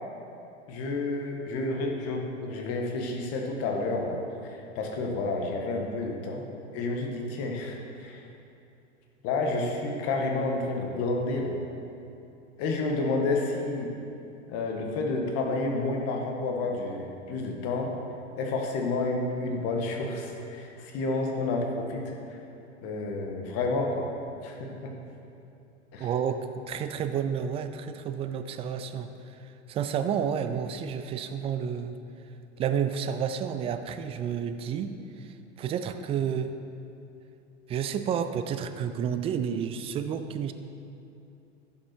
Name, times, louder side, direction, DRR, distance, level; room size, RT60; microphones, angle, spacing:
voice 1, 0.7-6.4 6.7-8.2 9.2-11.5 12.6-13.9 14.5-17.9 18.4-22.2 22.8-24.1 24.4-24.9 25.9-26.1, left 3 dB, 40° left, 1 dB, 1.6 m, -30 dB
voice 2, 26.0-29.1 29.7-32.0 32.6-36.5 37.7-40.5, right 8 dB, 15° right, 9 dB, 0.4 m, -30 dB
11.0 x 7.3 x 4.6 m, 2.7 s
figure-of-eight pair, 85°, 36 cm